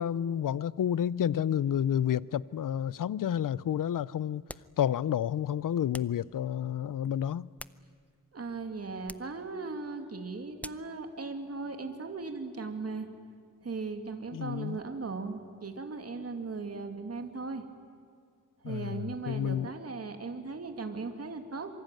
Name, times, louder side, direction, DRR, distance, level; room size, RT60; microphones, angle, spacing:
voice 1, 0.0-4.4 4.8-7.5 14.3-14.8 18.6-19.7, left 9 dB, 90° left, 0.6 m, -30 dB
sound 1, 4.5-4.8 5.9-6.2 7.3-8.2 9.0-9.4 10.6-11.0, left 1 dB, 5° left, 0.6 m, -46 dB
voice 2, 8.3-13.1 13.6-17.7 18.6-21.7, right 4 dB, 50° right, 2.5 m, -38 dB
26.5 x 24.5 x 9.1 m
wide cardioid pair, 105°, 31 cm